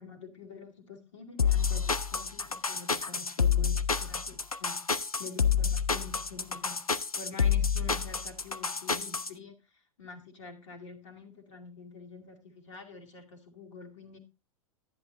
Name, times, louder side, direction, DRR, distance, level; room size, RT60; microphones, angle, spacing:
voice 1, 0.0-4.8 5.2-6.9 7.2-14.2, left 4 dB, 60° left, 2 dB, 2.3 m, -47 dB
sound 1, 1.4-9.3, left 6 dB, 85° left, 0.6 m, -28 dB
11.0 x 10.5 x 2.5 m, 0.28 s
figure-of-eight pair, 95°, 18 cm